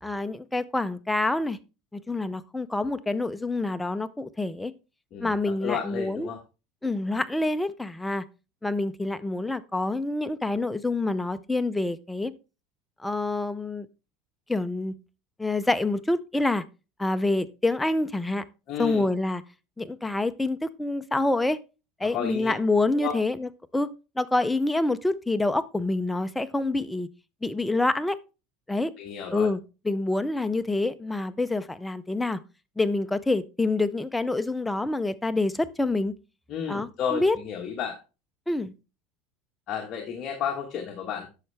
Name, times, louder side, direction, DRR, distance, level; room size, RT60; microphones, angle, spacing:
voice 1, 0.0-1.6 1.9-4.7 5.2-6.3 6.8-8.2 8.6-12.3 13.0-13.9 14.5-15.0 15.4-16.6 17.0-18.4 18.8-19.4 19.8-21.6 22.0-23.9 24.2-27.1 27.4-28.2 28.7-28.9 29.3-29.6 29.9-32.4 32.8-36.1 36.7-37.4 38.5-38.7, left 2 dB, 5° left, 0.5 m, -27 dB
voice 2, 5.1-6.4 18.7-19.1 22.0-22.5 22.9-23.2 29.0-29.5 36.5-38.0 39.7-41.3, left 8 dB, 35° left, 1.4 m, -32 dB
10.5 x 6.4 x 3.3 m
cardioid pair, 150°, 0 cm